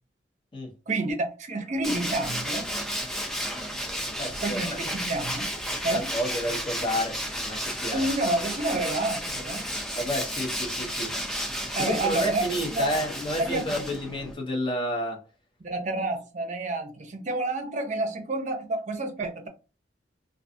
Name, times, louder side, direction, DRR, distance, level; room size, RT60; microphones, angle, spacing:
voice 1, 0.9-2.8 4.4-5.5 5.8-6.1 7.9-9.7 11.7-12.9 13.4-13.8 15.6-19.5, right 2 dB, 40° right, 0.6 m, -29 dB
Tools, 1.8-14.3, equal, 5° left, 0.4 m, -32 dB
voice 2, 4.2-4.8 5.9-8.1 9.9-11.1 11.8-15.2, equal, 30° left, 0.8 m, -30 dB
2.4 x 2.3 x 2.6 m
head